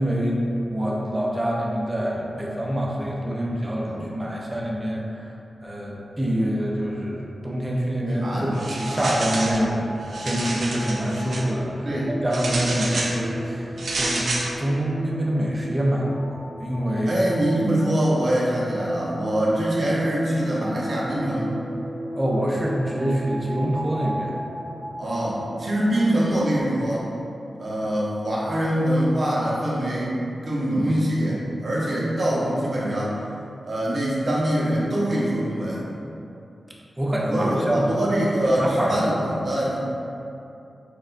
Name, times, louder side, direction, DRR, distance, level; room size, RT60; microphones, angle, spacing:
voice 1, 0.0-5.3 5.6-9.9 10.2-11.9 12.2-13.7 13.9-14.3 14.6-17.2 22.2-24.3 37.0-37.9 38.4-38.9, equal, 15° right, -3 dB, 0.5 m, -25 dB
voice 2, 8.1-8.5 8.9-9.1 11.8-12.1 17.1-21.5 25.0-27.1 27.5-30.2 30.4-33.2 33.6-35.9 37.3-39.8, right 1 dB, 50° right, -7 dB, 0.9 m, -24 dB
sound 1, 8.2-26.6, right 1 dB, 65° left, 0.7 m, -37 dB
sound 2, 8.5-9.6 10.0-11.4 12.3-13.2 13.8-14.5, right 2 dB, 65° right, 0.5 m, -29 dB
6.3 x 2.3 x 2.5 m, 2.7 s
wide cardioid pair, 115°, 0 cm